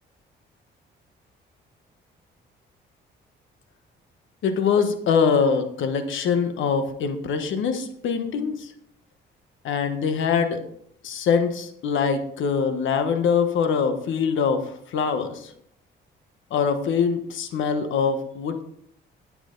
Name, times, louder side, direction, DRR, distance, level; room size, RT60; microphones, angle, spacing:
voice 1, 4.4-8.7 9.6-10.6 11.0-15.5 16.5-18.6, left 6 dB, 75° left, 8 dB, 1.3 m, -23 dB
10.5 x 7.9 x 3.9 m, 0.69 s
cardioid pair, 90°, 20 cm